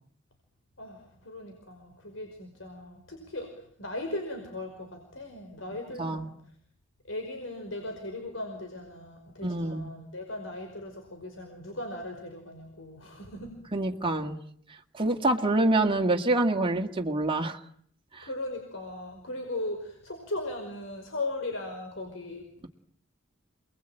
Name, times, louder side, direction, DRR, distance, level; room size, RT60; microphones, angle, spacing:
voice 1, 0.8-6.4 7.0-13.6 18.2-22.7, left 2 dB, 75° left, 3 dB, 5.2 m, -38 dB
voice 2, 9.4-9.9 13.7-14.4 14.9-17.6 18.1-18.3, right 2 dB, 25° right, 2 dB, 2.0 m, -26 dB
28.5 x 21.5 x 9.1 m, 0.64 s
head